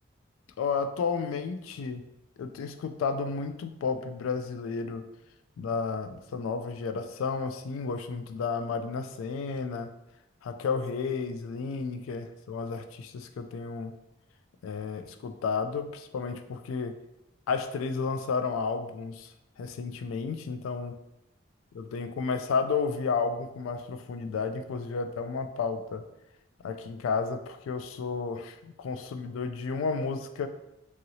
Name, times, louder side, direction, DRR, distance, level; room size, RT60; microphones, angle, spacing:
voice 1, 0.6-2.0 2.4-5.0 5.6-9.9 10.4-13.9 14.6-16.9 17.5-20.9 21.7-26.0 26.6-30.5, left 5 dB, 85° left, 9 dB, 0.3 m, -32 dB
2.9 x 2.8 x 2.7 m, 0.90 s
head